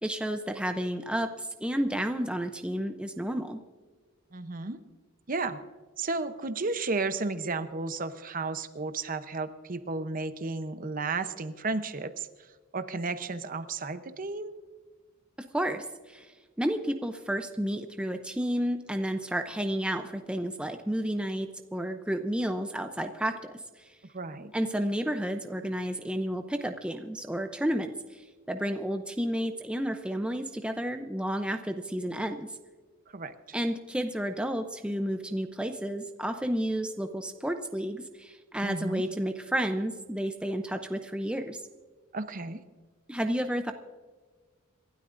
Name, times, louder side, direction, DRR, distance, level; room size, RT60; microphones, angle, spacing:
voice 1, 0.0-3.6 15.5-23.9 24.5-32.6 33.5-41.6 43.1-43.7, equal, 5° right, 6 dB, 0.5 m, -31 dB
voice 2, 4.3-4.8 5.3-5.6 6.0-12.3 12.7-14.5 24.1-24.5 33.1-33.3 38.6-39.0 42.1-42.6, right 3 dB, 40° right, 10 dB, 0.8 m, -33 dB
27.5 x 12.5 x 2.6 m, 1.4 s
head